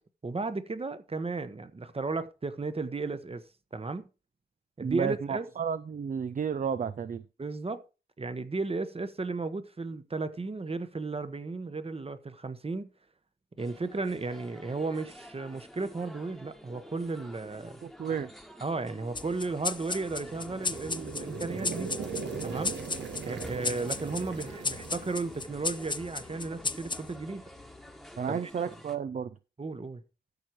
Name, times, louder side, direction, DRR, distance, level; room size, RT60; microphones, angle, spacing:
voice 1, 0.2-3.4 3.7-4.1 4.8-5.5 7.4-7.8 8.2-12.9 13.6-17.8 18.6-22.0 22.4-22.8 23.2-27.4 28.3-28.4 29.6-30.0, right 3 dB, 35° right, 1.1 m, -34 dB
voice 2, 4.8-7.2 17.8-18.3 28.2-29.3, right 7 dB, 50° right, 0.5 m, -32 dB
sound 1, 13.6-29.0, equal, ahead, 1.3 m, -49 dB
sound 2, 19.2-28.0, left 4 dB, 25° left, 0.5 m, -36 dB
sound 3, 20.0-26.1, right 5 dB, 90° right, 1.4 m, -40 dB
13.5 x 4.5 x 4.6 m
cardioid pair, 65°, 17 cm